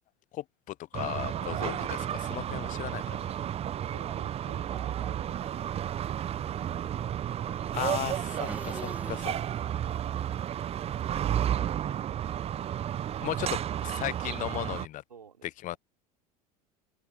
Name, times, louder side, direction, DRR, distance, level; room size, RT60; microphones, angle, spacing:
voice 1, 0.3-3.3 7.7-8.8 9.1-9.3 13.2-15.0 15.6-15.8, left 15 dB, 40° left, 0.6 m, -36 dB
sound 1, 0.9-14.9, right 10 dB, 30° right, 0.7 m, -32 dB
voice 2, 3.9-5.8 8.7-9.5 15.1-15.8, right 7 dB, 85° right, 4.7 m, -52 dB
Motorcycle / Engine, 6.1-11.7, right 2 dB, 5° right, 2.0 m, -48 dB
figure-of-eight pair, 75°, 20 cm